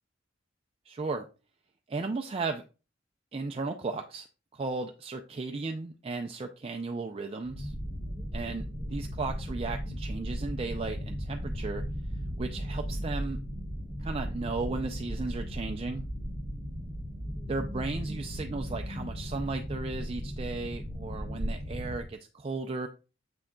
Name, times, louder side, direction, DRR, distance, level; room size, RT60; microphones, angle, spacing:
voice 1, 0.9-1.3 1.9-2.6 3.3-4.3 4.5-7.7 8.3-8.6 8.9-11.8 12.4-13.4 14.0-16.0 17.5-22.9, right 3 dB, 30° right, 5 dB, 0.4 m, -35 dB
sound 1, 7.4-22.1, equal, 30° left, 2.0 m, -36 dB
7.5 x 6.1 x 2.2 m, 0.32 s
head